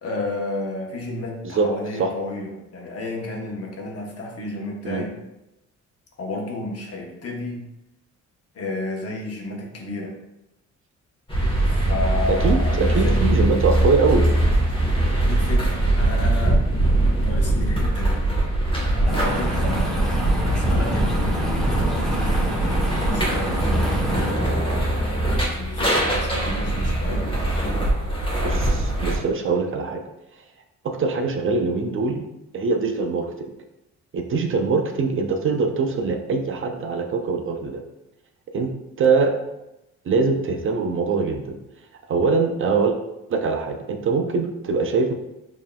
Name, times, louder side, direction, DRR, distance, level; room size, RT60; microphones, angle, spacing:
voice 1, 0.0-5.2 6.2-7.6 8.5-10.2 11.7-13.3 15.2-16.6 17.2-18.2 18.9-24.3 25.3-27.3, left 2 dB, 50° left, 0 dB, 1.0 m, -32 dB
sound 1, 11.3-29.2, right 1 dB, 15° left, 1.2 m, -22 dB
voice 2, 12.3-14.3 28.4-30.0 30.8-32.2 32.5-33.5 34.1-37.8 38.5-38.7 39.0-39.3 40.1-41.6 42.1-43.0 43.3-45.1, right 4 dB, 45° right, 4 dB, 0.5 m, -22 dB
sound 2, 19.1-24.3, equal, ahead, 0.9 m, -27 dB
5.2 x 2.9 x 2.3 m, 0.92 s
cardioid pair, 90°, 30 cm